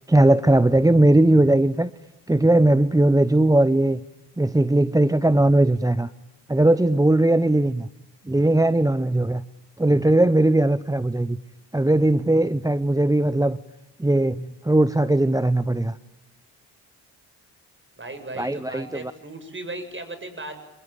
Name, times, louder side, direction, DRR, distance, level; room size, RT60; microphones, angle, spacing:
voice 1, 0.1-1.9 2.3-4.0 4.4-6.1 6.5-7.9 8.3-9.4 9.8-11.4 11.7-13.6 14.0-16.0 18.4-19.0, right 1 dB, 10° right, 14 dB, 0.9 m, -19 dB
voice 2, 18.0-20.6, right 2 dB, 30° right, 9 dB, 7.7 m, -36 dB
28.0 x 21.5 x 9.1 m, 0.97 s
cardioid pair, 65°, 40 cm